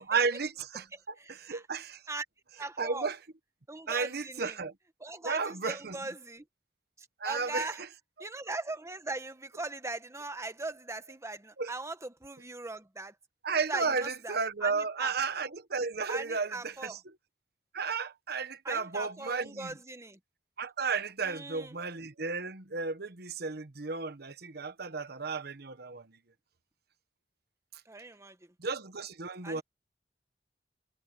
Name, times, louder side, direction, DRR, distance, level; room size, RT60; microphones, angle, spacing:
voice 1, 0.0-2.0 2.8-3.2 3.9-4.7 5.2-6.0 7.2-7.7 11.6-11.7 13.4-17.2 17.7-19.7 20.6-26.2 28.6-29.6, right 4 dB, 60° right, 1.2 m, -33 dB
voice 2, 0.9-1.6 2.1-2.2 2.6-3.1 3.7-4.6 5.0-6.4 7.2-7.8 8.2-13.1 13.7-14.4 14.6-15.1 16.1-17.0 18.6-20.2 21.2-21.8 27.9-28.4 29.4-29.6, right 2 dB, 15° right, 1.1 m, -40 dB
head